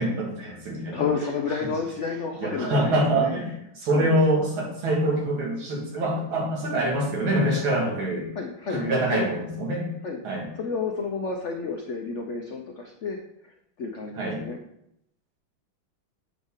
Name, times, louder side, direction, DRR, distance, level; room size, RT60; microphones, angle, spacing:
voice 1, 0.0-1.0 1.6-1.7 2.4-3.5 3.8-8.3 8.7-9.9 10.2-10.5 14.2-14.4, right 1 dB, 85° right, -2 dB, 2.6 m, -25 dB
voice 2, 0.9-3.4 3.9-4.2 8.3-8.8 9.1-9.3 10.0-10.2 10.6-13.2 13.8-14.6, left 5 dB, 80° left, 2 dB, 0.6 m, -30 dB
8.0 x 5.1 x 3.6 m, 0.77 s
omnidirectional pair, 2.2 m